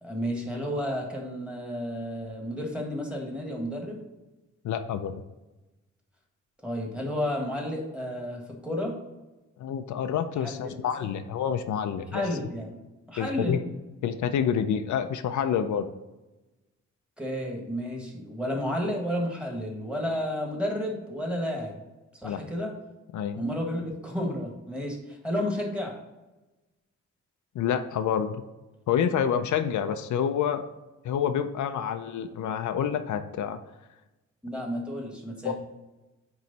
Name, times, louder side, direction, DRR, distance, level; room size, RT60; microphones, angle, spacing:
voice 1, 0.0-4.0 6.6-8.9 10.4-10.8 12.1-12.7 13.1-13.7 17.2-21.8 22.2-22.7 23.4-25.9 34.4-35.5, equal, 5° right, 0 dB, 1.5 m, -31 dB
voice 2, 4.6-5.2 9.6-12.2 13.2-13.6 14.0-15.9 22.2-22.4 23.1-23.4 27.5-28.4 28.9-30.6 31.0-33.6 35.4-35.5, left 8 dB, 80° left, 8 dB, 0.5 m, -28 dB
9.2 x 3.2 x 4.0 m, 1.1 s
wide cardioid pair, 135°, 29 cm